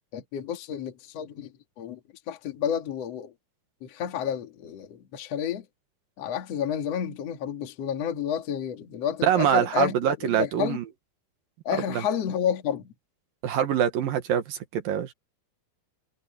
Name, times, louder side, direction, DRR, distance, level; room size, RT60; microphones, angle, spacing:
voice 1, 0.1-2.0 2.3-3.3 3.8-5.7 6.2-10.8 11.6-12.9, left 9 dB, 45° left, 2.6 m, -30 dB
voice 2, 9.2-10.8 11.9-12.0 13.4-15.1, right 10 dB, 65° right, 2.8 m, -24 dB
omnidirectional pair, 4.7 m